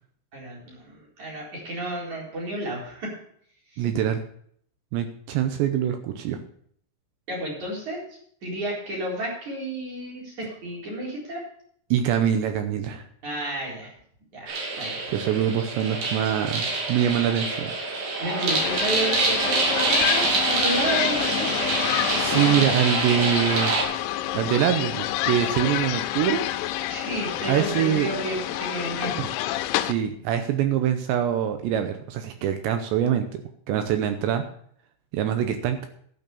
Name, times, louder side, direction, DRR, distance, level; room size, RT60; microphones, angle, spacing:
voice 1, 0.3-3.1 3.7-3.9 7.3-11.4 13.2-13.9 14.3-15.0 17.9-21.5 26.9-29.2, right 1 dB, 35° right, -3 dB, 5.1 m, -32 dB
voice 2, 3.8-4.2 4.9-6.4 11.9-13.0 15.1-17.7 22.1-23.7 24.3-26.4 27.5-28.1 29.2-29.3 29.8-33.4 33.7-34.4 35.1-35.9, right 10 dB, 85° right, 7 dB, 2.6 m, -24 dB
sound 1, 14.5-23.8, right 3 dB, 65° right, 4.5 m, -26 dB
sound 2, 18.5-29.9, left 13 dB, 80° left, 2.9 m, -28 dB
12.5 x 6.5 x 7.0 m, 0.62 s
omnidirectional pair, 6.0 m